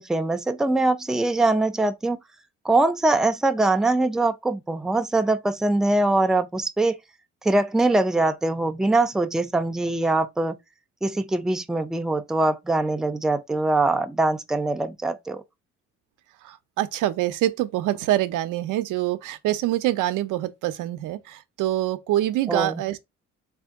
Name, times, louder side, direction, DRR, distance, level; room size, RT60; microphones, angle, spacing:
voice 1, 0.0-2.2 2.6-7.0 7.4-10.6 11.0-15.4 22.5-22.8, right 2 dB, ahead, 0.4 m, -22 dB
voice 2, 16.4-23.0, right 14 dB, 85° right, 0.5 m, -25 dB
3.6 x 2.7 x 3.4 m
cardioid pair, 90°, 30 cm